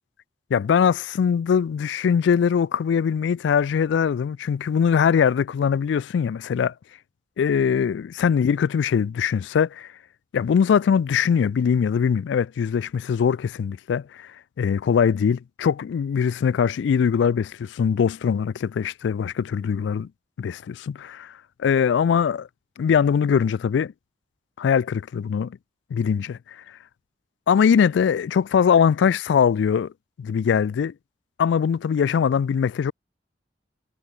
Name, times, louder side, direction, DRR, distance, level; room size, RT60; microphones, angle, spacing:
voice 1, 0.5-6.7 7.4-9.9 10.3-14.3 14.6-20.1 20.4-21.3 21.6-22.5 22.8-23.9 24.6-25.6 25.9-26.4 27.5-29.9 30.2-30.9 31.4-32.9, left 7 dB, 70° left, 0.3 m, -21 dB
head